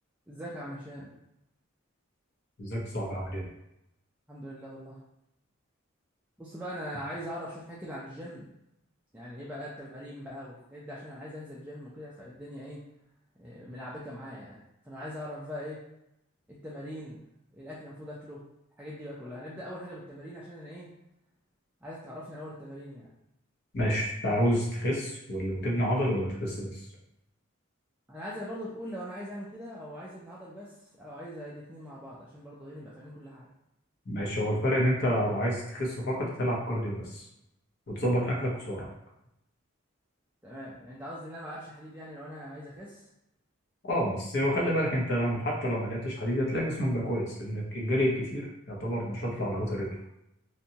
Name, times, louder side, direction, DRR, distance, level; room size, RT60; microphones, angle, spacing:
voice 1, 0.3-1.1 4.3-5.0 6.4-8.5 9.1-12.8 13.4-14.6 14.8-15.8 16.5-18.4 18.8-20.9 21.8-23.1 28.1-33.5 40.4-43.1, equal, 5° right, -7 dB, 0.3 m, -41 dB
voice 2, 2.6-3.5 23.7-26.9 34.1-37.3 37.9-38.9 43.9-49.9, equal, 50° left, -3 dB, 0.7 m, -29 dB
2.7 x 2.2 x 2.7 m, 0.84 s
head